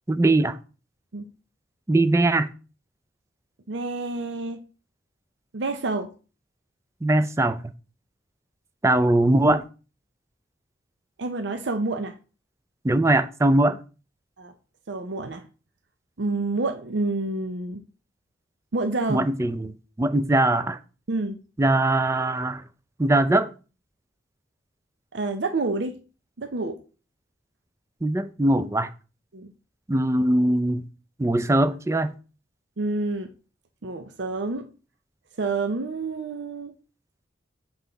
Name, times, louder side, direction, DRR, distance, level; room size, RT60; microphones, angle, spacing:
voice 1, 0.1-0.6 1.9-2.5 7.0-7.6 8.8-9.6 12.8-13.8 19.1-20.8 21.6-22.6 23.0-23.5 28.0-28.9 29.9-30.9 31.2-32.1, right 1 dB, 15° right, 0.4 m, -21 dB
voice 2, 3.7-4.6 5.5-6.1 11.2-12.1 14.4-14.5 14.9-15.4 16.2-17.8 18.7-19.3 21.1-21.4 25.1-26.0 26.4-26.8 29.3-29.5 32.8-33.3 33.8-34.7 35.4-36.7, right 3 dB, 70° right, 0.6 m, -28 dB
7.7 x 3.5 x 3.9 m
head